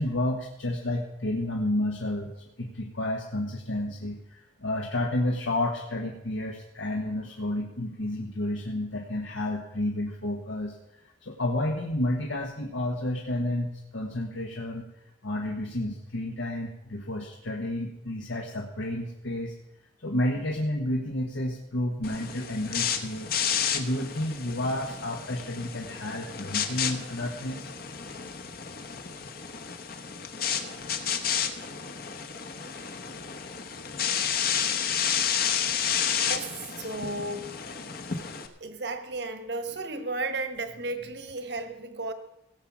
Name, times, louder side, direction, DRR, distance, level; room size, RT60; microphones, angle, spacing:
voice 1, 0.0-19.5 20.0-23.3 23.7-27.7, left 1 dB, 85° left, 0 dB, 1.4 m, -31 dB
sound 1, 22.0-38.5, left 7 dB, 50° left, 1.0 m, -31 dB
voice 2, 36.3-37.5 38.6-42.1, right 2 dB, 60° right, 9 dB, 1.3 m, -34 dB
17.0 x 7.2 x 6.1 m, 0.88 s
head